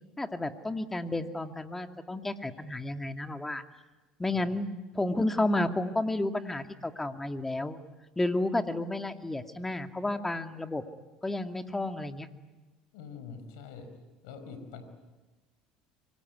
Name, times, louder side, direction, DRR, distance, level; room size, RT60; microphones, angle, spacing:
voice 1, 0.2-3.6 4.2-7.8 8.2-10.8 11.2-12.3, left 2 dB, 10° left, 7 dB, 2.3 m, -31 dB
voice 2, 12.9-13.9 14.2-14.8, left 6 dB, 80° left, 9 dB, 5.2 m, -44 dB
25.5 x 23.5 x 9.5 m, 1.2 s
hypercardioid pair, 85°, 2 cm